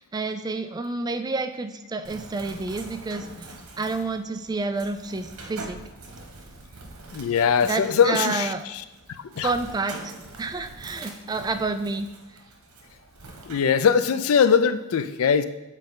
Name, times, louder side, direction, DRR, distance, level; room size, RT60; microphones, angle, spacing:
voice 1, 0.0-3.5 3.8-5.8 7.6-8.6 9.4-12.1, right 3 dB, 20° right, 8 dB, 0.3 m, -29 dB
Bird, 2.0-13.5, right 2 dB, 90° right, 1.2 m, -44 dB
voice 2, 7.1-8.5 9.4-9.5 13.5-15.4, left 6 dB, 70° left, 12 dB, 0.4 m, -21 dB
7.4 x 4.3 x 3.7 m, 1.0 s
head